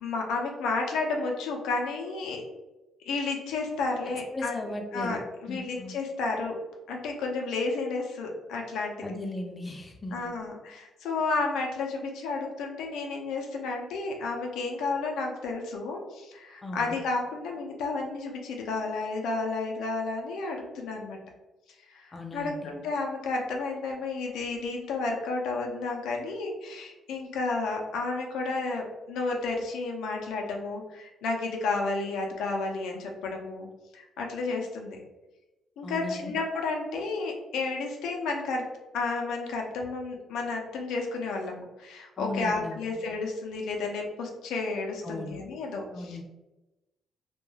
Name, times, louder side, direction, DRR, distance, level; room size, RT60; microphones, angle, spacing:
voice 1, 0.0-2.4 3.0-4.6 4.9-6.6 6.9-9.0 10.1-21.2 21.8-33.7 33.9-35.0 35.8-38.7 38.9-46.2, left 3 dB, 85° left, 1 dB, 0.5 m, -32 dB
voice 2, 4.1-5.2 5.5-5.9 9.0-10.2 16.6-17.0 22.1-22.8 35.8-36.3 42.2-42.8 45.0-45.4 45.9-46.2, left 2 dB, 25° left, 3 dB, 0.4 m, -37 dB
2.2 x 2.1 x 3.1 m, 1.0 s
cardioid pair, 90°, 0 cm